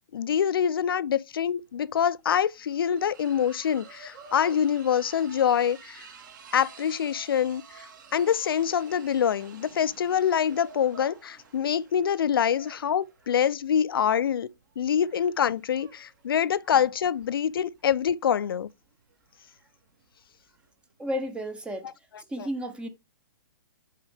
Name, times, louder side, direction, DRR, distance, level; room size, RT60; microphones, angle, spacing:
voice 1, 0.1-6.1 6.5-7.9 8.1-14.5 14.8-18.7, left 8 dB, 80° left, 0.5 m, -25 dB
sound 1, 1.5-1.6 1.8-20.7, right 5 dB, 55° right, 2.5 m, -51 dB
voice 2, 21.0-21.9 22.3-22.9, equal, 10° right, 0.7 m, -32 dB
6.5 x 4.6 x 3.4 m
hypercardioid pair, 145°, 12 cm